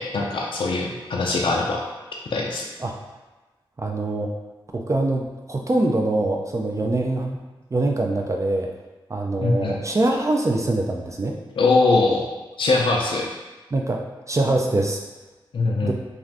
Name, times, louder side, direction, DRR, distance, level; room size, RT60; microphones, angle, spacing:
voice 1, 0.0-1.8 2.3-2.7 9.4-9.8 11.6-12.3 12.6-13.2 15.5-15.9, left 3 dB, 65° left, -1 dB, 0.4 m, -21 dB
voice 2, 3.8-4.3 4.7-7.4 7.7-8.7 9.1-11.4 13.7-15.0 15.8-15.9, right 2 dB, 35° right, 1 dB, 0.4 m, -23 dB
2.5 x 2.4 x 3.3 m, 1.2 s
cardioid pair, 50°, 9 cm